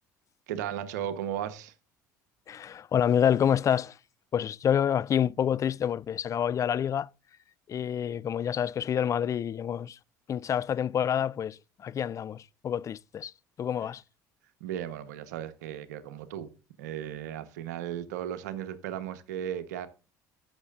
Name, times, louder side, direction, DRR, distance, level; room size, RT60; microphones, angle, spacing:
voice 1, 0.5-1.7 14.6-16.5 16.8-19.9, right 10 dB, 85° right, 1.0 m, -35 dB
voice 2, 2.5-4.0 4.3-7.1 7.7-10.0 10.3-13.3 13.6-14.0, left 9 dB, 35° left, 0.4 m, -28 dB
15.0 x 6.2 x 2.4 m
hypercardioid pair, 75°, 9 cm